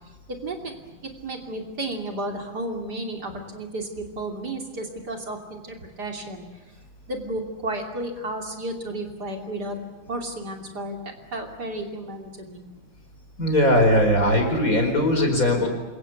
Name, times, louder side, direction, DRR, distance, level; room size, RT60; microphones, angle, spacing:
voice 1, 0.3-0.8 1.0-6.4 7.1-9.8 10.1-11.0 11.3-12.6, right 1 dB, 50° right, 3 dB, 3.4 m, -32 dB
voice 2, 13.4-15.7, left 1 dB, 40° left, 4 dB, 5.1 m, -19 dB
27.0 x 23.5 x 8.1 m, 1.3 s
omnidirectional pair, 2.2 m